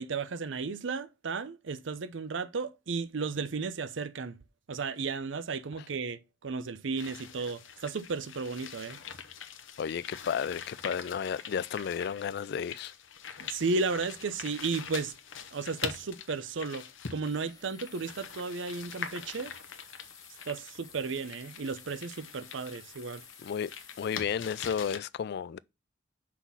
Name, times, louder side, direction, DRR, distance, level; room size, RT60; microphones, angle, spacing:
voice 1, 0.0-4.3 4.7-9.0 13.4-15.1 15.5-19.5 20.5-23.2, right 4 dB, 70° right, 0.6 m, -34 dB
sound 1, 7.0-25.0, left 7 dB, 80° left, 0.9 m, -44 dB
voice 2, 9.8-12.9 23.4-23.7 24.0-25.6, left 7 dB, 55° left, 0.3 m, -33 dB
sound 2, 15.9-16.3 17.2-24.2, left 6 dB, 20° left, 0.9 m, -54 dB
5.9 x 4.1 x 6.0 m
head